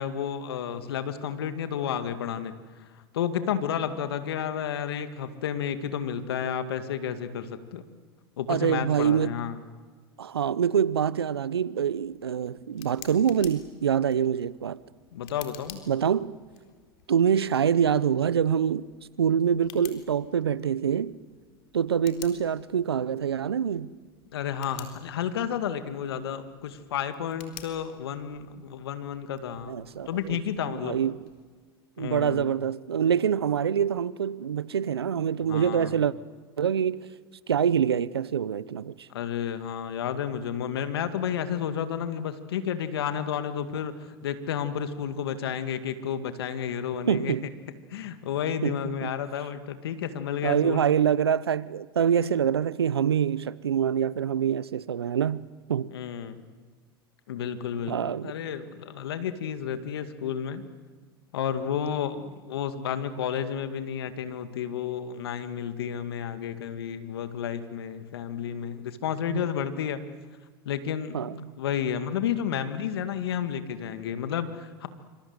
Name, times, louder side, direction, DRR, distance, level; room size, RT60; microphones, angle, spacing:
voice 1, 0.0-2.5 3.1-7.8 8.4-9.6 15.1-15.8 24.3-29.7 30.1-31.0 32.0-32.4 35.5-36.0 39.1-43.9 44.2-47.3 47.9-50.8 55.9-56.4 57.3-60.6 61.3-70.0 70.7-71.2 71.6-74.9, left 8 dB, 80° left, 2.2 m, -31 dB
voice 2, 8.5-9.4 10.2-14.8 15.9-16.3 17.1-18.9 19.2-21.2 21.7-23.9 29.7-30.4 30.7-31.2 32.0-36.1 36.6-37.1 37.5-39.1 47.1-47.4 48.6-49.1 50.4-55.9 57.9-58.3 69.3-69.4 71.1-71.4, right 8 dB, 90° right, 0.8 m, -25 dB
Tick, 11.8-31.4, left 12 dB, 60° left, 3.9 m, -52 dB
26.5 x 26.0 x 8.2 m
hypercardioid pair, 90°, 13 cm